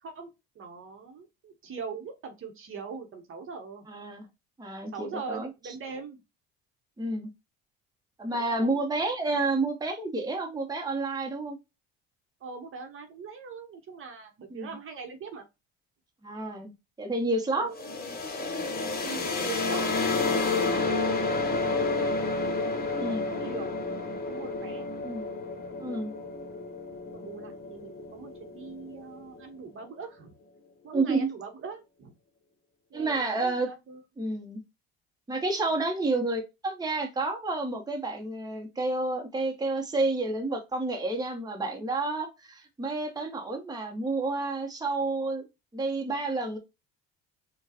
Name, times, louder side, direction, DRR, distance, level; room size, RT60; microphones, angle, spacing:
voice 1, 0.0-3.9 4.9-6.2 8.3-9.1 12.4-15.4 17.5-17.8 19.0-22.2 23.0-23.6 24.1-24.9 27.1-30.3 30.8-32.1 32.9-34.0, right 5 dB, 45° right, 4 dB, 1.0 m, -42 dB
voice 2, 3.9-4.3 4.6-5.5 7.0-7.3 8.2-11.6 14.5-14.7 16.2-16.7 17.0-17.7 23.0-23.3 25.0-25.2 25.8-26.1 30.9-31.3 32.9-33.7 34.2-34.6 35.3-45.5 45.7-46.6, right 2 dB, 15° right, 2 dB, 1.1 m, -30 dB
sound 1, 17.7-29.4, left 3 dB, 30° left, 1.0 m, -30 dB
4.4 x 2.3 x 2.8 m, 0.24 s
hypercardioid pair, 75°, 30 cm